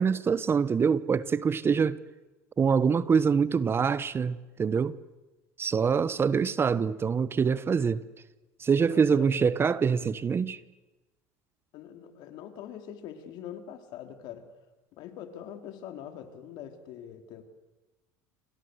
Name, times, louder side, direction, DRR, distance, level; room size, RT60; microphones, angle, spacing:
voice 1, 0.0-2.0 2.6-5.0 5.6-8.0 8.6-10.6, right 6 dB, 30° right, 1.1 m, -25 dB
voice 2, 8.9-9.3 11.7-14.4 14.9-17.4, left 9 dB, 65° left, 3.8 m, -43 dB
29.0 x 25.5 x 8.0 m
supercardioid pair, 95°, 8 cm